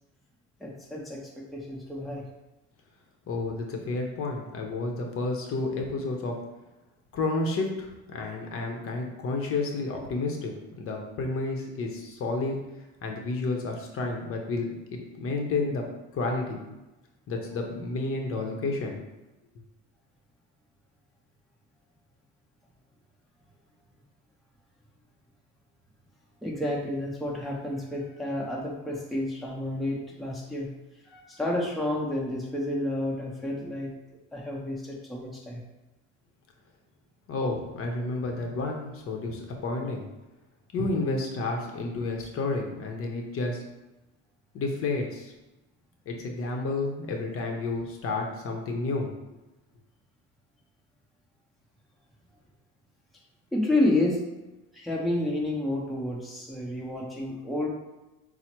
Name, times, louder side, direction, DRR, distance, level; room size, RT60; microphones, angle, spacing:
voice 1, 0.6-2.2 26.4-30.7 31.1-33.9 34.3-35.6 53.5-54.2 54.7-57.7, left 1 dB, ahead, -4 dB, 0.8 m, -30 dB
voice 2, 3.3-6.4 7.1-10.5 10.8-12.6 13.0-15.9 16.1-16.7 17.3-19.0 37.3-40.0 40.7-43.6 44.5-45.3 46.1-49.1, left 3 dB, 45° left, 2 dB, 0.7 m, -31 dB
5.5 x 2.1 x 4.4 m, 1.0 s
cardioid pair, 130°, 32 cm